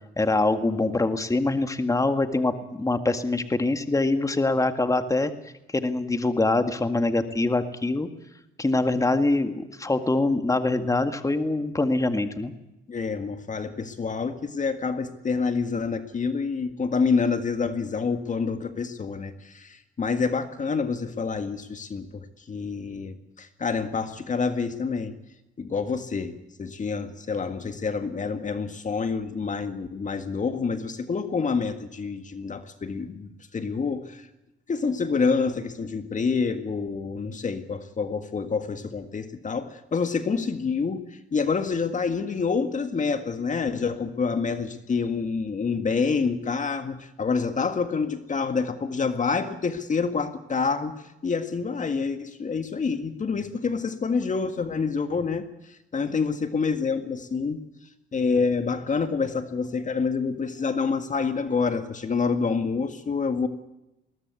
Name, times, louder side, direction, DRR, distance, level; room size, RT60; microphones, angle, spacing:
voice 1, 0.2-5.3 5.7-8.1 8.6-12.5, left 2 dB, 15° left, 8 dB, 1.9 m, -24 dB
voice 2, 12.9-25.1 25.6-34.3 34.7-57.6 58.1-63.5, left 5 dB, 40° left, 8 dB, 1.8 m, -27 dB
21.5 x 18.5 x 8.3 m, 0.91 s
cardioid pair, 90°, 20 cm